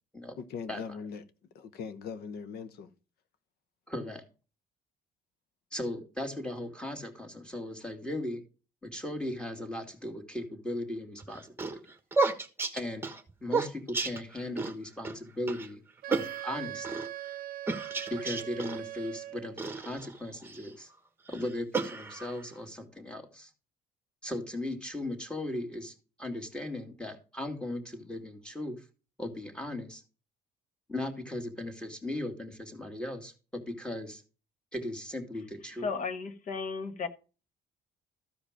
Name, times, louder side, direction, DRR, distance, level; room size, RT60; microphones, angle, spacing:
voice 1, 0.4-1.2 1.5-2.9, left 6 dB, 70° left, 1.1 m, -40 dB
voice 2, 3.9-4.2 5.7-8.4 8.8-11.8 12.7-13.1 13.4-15.8 16.1-17.0 18.1-20.9 21.3-23.5 24.2-28.8 29.2-30.0 30.9-34.2 34.7-35.9, left 1 dB, 5° left, 2.3 m, -37 dB
sound 1, 11.2-14.7 15.0-15.2 15.5-15.7 16.1-17.1 17.7-18.8 19.6-20.7 21.3-22.5, right 3 dB, 15° right, 1.3 m, -32 dB
Wind instrument woodwind instrument, 16.0-19.6, right 13 dB, 60° right, 0.6 m, -41 dB
voice 3, 35.8-37.1, left 4 dB, 50° left, 1.3 m, -34 dB
14.0 x 5.0 x 5.1 m
cardioid pair, 110°, 17 cm